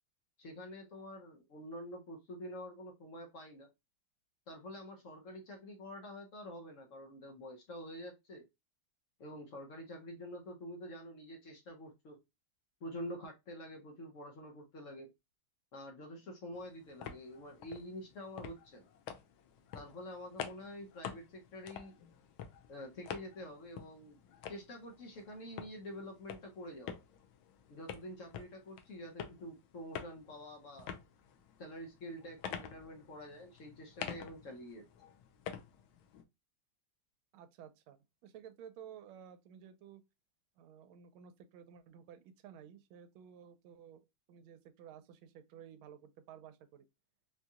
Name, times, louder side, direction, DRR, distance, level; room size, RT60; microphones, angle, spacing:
voice 1, 0.4-3.7 4.5-8.5 9.2-12.2 12.8-15.1 15.7-18.9 19.7-22.0 22.7-24.2 24.5-27.0 27.7-30.9 31.6-34.9, equal, 65° left, 0.7 m, -47 dB
sound 1, 16.5-36.2, left 8 dB, 80° left, 1.4 m, -49 dB
voice 2, 37.3-40.0 40.6-46.9, right 8 dB, 80° right, 1.4 m, -54 dB
4.4 x 2.7 x 2.3 m
omnidirectional pair, 2.3 m